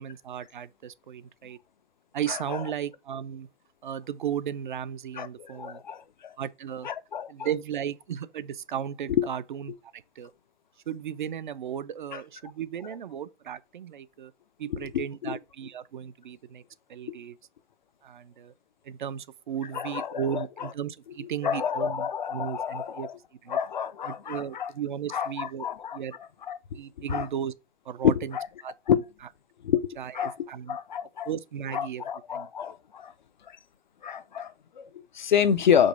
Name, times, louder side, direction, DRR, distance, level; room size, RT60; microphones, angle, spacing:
voice 1, 0.0-1.6 2.1-3.5 3.8-5.8 6.4-6.9 7.3-10.3 10.9-14.3 14.6-16.6 16.9-17.4 18.0-18.5 18.8-23.1 23.4-23.6 24.1-26.2 26.8-27.5 27.9-28.4 28.6-28.7 30.0-30.8 31.3-32.0 32.3-32.5, right 9 dB, 45° right, 0.5 m, -35 dB
voice 2, 2.3-2.6 5.2-6.4 6.8-7.3 9.1-9.3 12.1-12.2 14.7-15.3 17.1-17.2 19.7-20.4 21.4-23.1 23.5-24.7 25.1-26.0 26.4-26.6 27.1-27.3 28.0-28.5 28.9-29.0 29.6-31.3 31.7-33.1 33.5-33.6 34.0-35.9, left 8 dB, 40° left, 0.4 m, -28 dB
5.2 x 3.9 x 5.2 m
hypercardioid pair, 145°, 36 cm